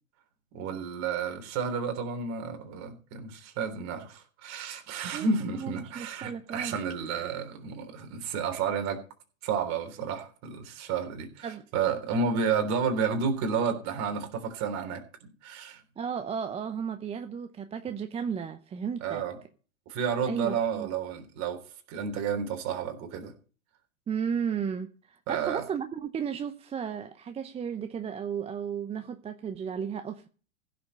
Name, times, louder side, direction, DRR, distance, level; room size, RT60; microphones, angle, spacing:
voice 1, 0.5-9.0 9.4-15.8 19.0-19.4 19.9-21.6 21.9-23.3 25.3-25.6, right 6 dB, 40° right, 3.5 m, -31 dB
voice 2, 5.1-6.8 11.4-11.6 16.0-19.2 20.2-20.9 24.1-30.3, right 7 dB, 15° right, 0.7 m, -34 dB
15.5 x 6.8 x 5.4 m
hypercardioid pair, 110°, 41 cm